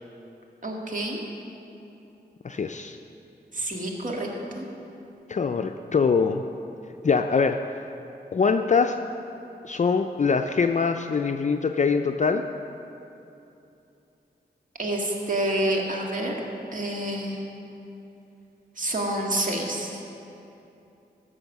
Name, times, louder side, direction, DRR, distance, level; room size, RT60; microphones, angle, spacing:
voice 1, 0.6-1.2 3.5-4.3 4.5-4.7 14.8-16.4 16.7-17.4 18.8-20.0, right 1 dB, 50° right, -1 dB, 1.9 m, -28 dB
voice 2, 2.4-3.0 5.3-6.4 7.0-7.6 8.3-9.0 9.6-12.4, left 5 dB, 45° left, 5 dB, 0.5 m, -23 dB
15.5 x 6.3 x 6.0 m, 2.8 s
cardioid pair, 60°, 18 cm